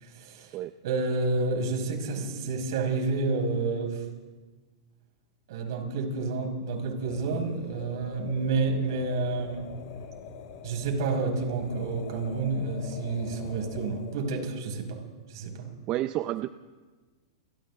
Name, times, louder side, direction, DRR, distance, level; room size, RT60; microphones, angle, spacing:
voice 1, 0.0-4.0 5.5-9.7 10.6-15.7, right 3 dB, 65° right, 3 dB, 5.7 m, -30 dB
sound 1, 6.9-14.3, left 7 dB, 55° left, 5.9 m, -44 dB
voice 2, 15.9-16.5, right 15 dB, 35° right, 12 dB, 0.6 m, -29 dB
29.5 x 24.0 x 3.8 m, 1.3 s
hypercardioid pair, 125°, 2 cm